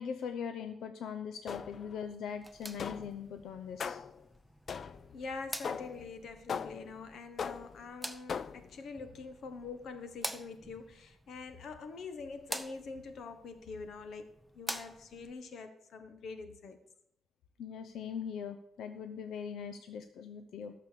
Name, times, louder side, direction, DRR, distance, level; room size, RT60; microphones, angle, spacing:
voice 1, 0.0-4.0 17.6-20.7, left 7 dB, 85° left, 8 dB, 0.6 m, -41 dB
sound 1, 1.5-2.0 2.8-3.2 3.8-4.2 4.7-5.1 5.6-6.1 6.5-7.0 7.4-7.8 8.3-8.7, left 6 dB, 40° left, 0.4 m, -39 dB
sound 2, 2.3-15.3, equal, ahead, 0.6 m, -47 dB
voice 2, 5.1-16.8, left 4 dB, 60° left, 9 dB, 1.3 m, -45 dB
12.5 x 6.8 x 6.7 m, 0.78 s
wide cardioid pair, 170°, 0 cm